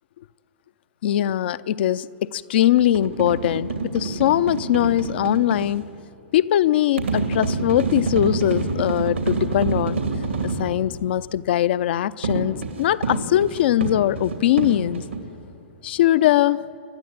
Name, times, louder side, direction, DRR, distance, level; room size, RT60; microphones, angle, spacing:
voice 1, 1.0-5.8 6.3-10.0 10.4-15.0 15.8-16.7, left 12 dB, 60° left, 0.5 m, -21 dB
sound 1, 2.8-5.7 7.0-10.7 12.2-15.2, right 4 dB, 85° right, 2.9 m, -27 dB
28.5 x 12.0 x 8.8 m
hypercardioid pair, 115°, 6 cm